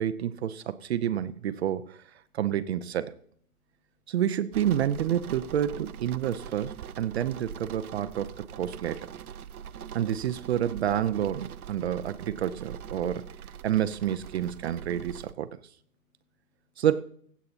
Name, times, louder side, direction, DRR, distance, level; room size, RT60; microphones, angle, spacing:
voice 1, 0.0-2.0 2.3-3.2 4.1-9.1 9.9-13.2 13.6-15.5 16.8-17.0, right 10 dB, 50° right, 12 dB, 0.6 m, -29 dB
voice 2, 3.5-4.2 15.9-16.9, left 4 dB, 50° left, 1 dB, 6.4 m, -77 dB
sound 1, 4.5-15.3, right 8 dB, 90° right, 0.7 m, -42 dB
24.5 x 8.4 x 2.8 m, 0.63 s
hypercardioid pair, 145°, 43 cm